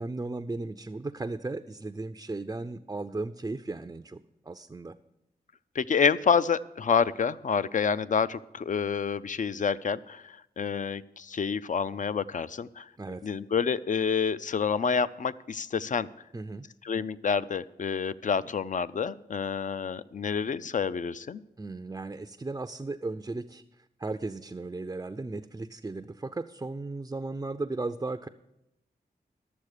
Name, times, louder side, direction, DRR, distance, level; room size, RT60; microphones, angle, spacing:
voice 1, 0.0-5.0 13.0-13.3 16.3-16.7 21.6-23.6 24.0-28.3, right 3 dB, 20° right, 8 dB, 0.4 m, -36 dB
voice 2, 5.7-12.9 13.2-16.1 16.8-21.4, left 6 dB, 50° left, 16 dB, 0.4 m, -28 dB
12.0 x 7.0 x 6.6 m, 0.87 s
wide cardioid pair, 70°, 17 cm